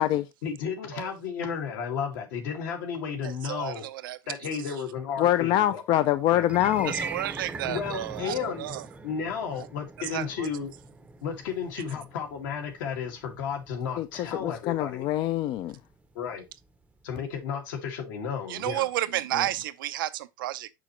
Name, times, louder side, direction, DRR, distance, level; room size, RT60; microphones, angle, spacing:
voice 1, 0.4-3.8 4.3-5.8 6.3-6.4 7.7-8.7 9.0-10.7 11.2-15.1 16.1-16.5 17.0-18.9, left 6 dB, 75° left, 2.1 m, -33 dB
voice 2, 3.2-4.2 4.6-4.7 6.9-8.9 9.6-9.7 10.0-10.5 18.5-20.7, right 14 dB, 90° right, 0.6 m, -32 dB
voice 3, 5.2-6.9 14.0-15.8, left 12 dB, 45° left, 0.4 m, -24 dB
sound 1, 6.4-16.7, right 3 dB, 10° right, 0.6 m, -42 dB
6.2 x 5.7 x 3.0 m
supercardioid pair, 125°, 11 cm